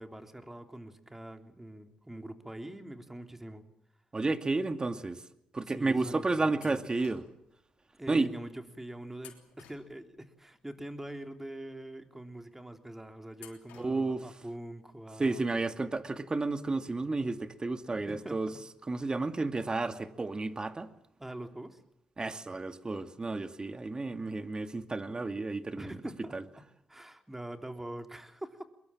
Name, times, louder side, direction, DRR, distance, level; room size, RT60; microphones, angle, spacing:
voice 1, 0.0-3.6 5.7-6.8 8.0-15.4 17.9-18.4 21.2-21.8 25.8-28.7, right 1 dB, 15° right, 3.5 m, -44 dB
voice 2, 4.1-5.2 5.5-7.2 8.1-8.3 13.8-14.2 15.2-18.5 18.9-20.9 22.2-25.9 26.3-26.4, right 3 dB, 30° right, 2.2 m, -32 dB
sound 1, 6.6-7.5 9.2-10.3 13.4-14.3, left 10 dB, 90° left, 3.3 m, -55 dB
23.5 x 22.0 x 7.4 m
supercardioid pair, 50°, 3 cm